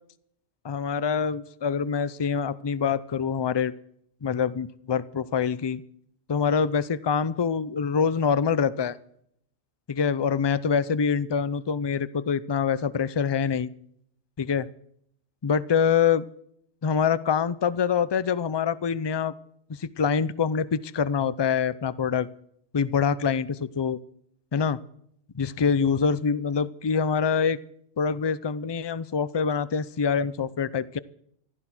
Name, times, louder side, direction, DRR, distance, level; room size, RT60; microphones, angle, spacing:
voice 1, 0.6-3.7 4.2-5.8 6.3-9.0 9.9-13.7 14.4-14.7 15.4-16.2 16.8-19.3 19.7-22.3 22.7-24.0 24.5-24.8 25.3-27.6 28.0-31.0, left 6 dB, 35° left, 17 dB, 0.4 m, -25 dB
15.0 x 12.5 x 6.1 m, 0.69 s
omnidirectional pair, 1.2 m